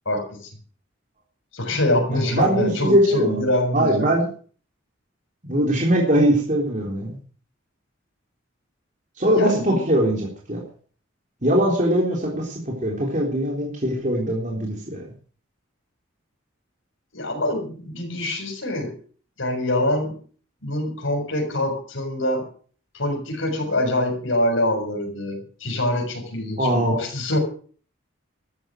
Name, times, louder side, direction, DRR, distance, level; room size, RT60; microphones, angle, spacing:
voice 1, 0.0-0.5 1.5-4.1 9.3-9.8 17.1-18.9 19.4-20.1 20.6-22.4 22.9-27.4, left 1 dB, 75° left, 2 dB, 6.8 m, -25 dB
voice 2, 2.1-3.5 3.7-4.3 5.5-7.2 9.2-10.6 11.4-15.0 26.6-27.0, right 1 dB, 40° right, -1 dB, 3.6 m, -21 dB
14.0 x 12.5 x 6.2 m, 0.43 s
head